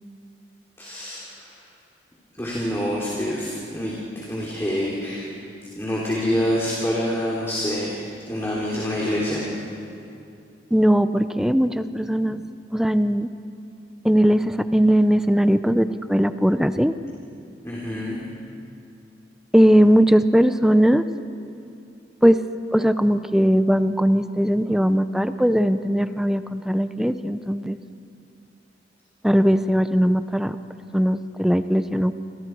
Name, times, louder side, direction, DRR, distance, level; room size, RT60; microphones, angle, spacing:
voice 1, 0.8-1.6 2.4-5.3 5.8-9.5 17.6-18.2, equal, 15° left, -5 dB, 3.3 m, -26 dB
voice 2, 10.7-12.4 12.7-13.3 14.0-16.9 19.5-21.0 22.2-22.5 22.7-27.8 29.2-30.6 30.9-32.1, equal, 5° right, 11 dB, 0.6 m, -19 dB
29.5 x 26.0 x 4.7 m, 2.5 s
head